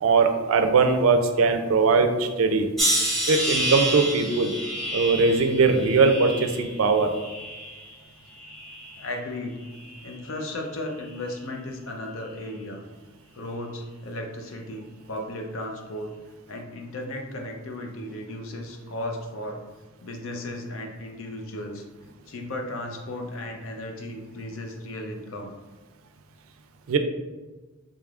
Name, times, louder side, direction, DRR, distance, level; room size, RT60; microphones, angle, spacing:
voice 1, 0.0-2.7 3.3-4.5 4.9-7.1 26.9-27.0, right 4 dB, 90° right, 7 dB, 0.4 m, -20 dB
sound 1, 2.8-7.9 8.4-9.1 9.8-10.1, equal, ahead, 0.9 m, -29 dB
voice 2, 9.0-9.7 10.0-12.8 13.3-16.2 16.5-19.6 20.0-21.8 22.3-25.5, left 1 dB, 75° left, 3 dB, 0.6 m, -35 dB
3.7 x 3.4 x 2.4 m, 1.2 s
head